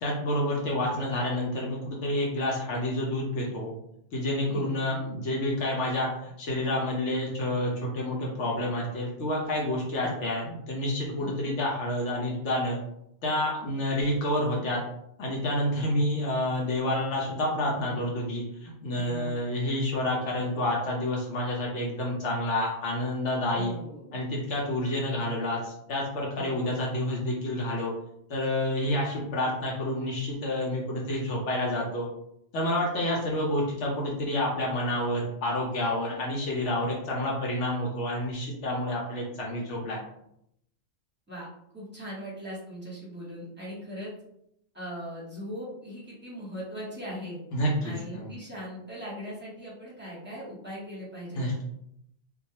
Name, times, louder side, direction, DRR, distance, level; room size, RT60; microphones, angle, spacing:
voice 1, 0.0-3.7 4.1-12.8 13.2-14.8 15.2-23.7 24.1-27.9 28.3-32.1 32.5-40.0 47.5-48.3 51.3-51.6, left 1 dB, 70° left, -2 dB, 0.9 m, -29 dB
voice 2, 4.5-5.0 10.0-10.1 11.2-11.4 18.9-19.3 23.5-24.2 26.3-26.6 41.3-41.5 41.7-44.1 44.7-47.4 47.8-51.4, equal, 10° right, -7 dB, 0.8 m, -40 dB
2.3 x 2.2 x 2.8 m, 0.76 s
omnidirectional pair, 1.3 m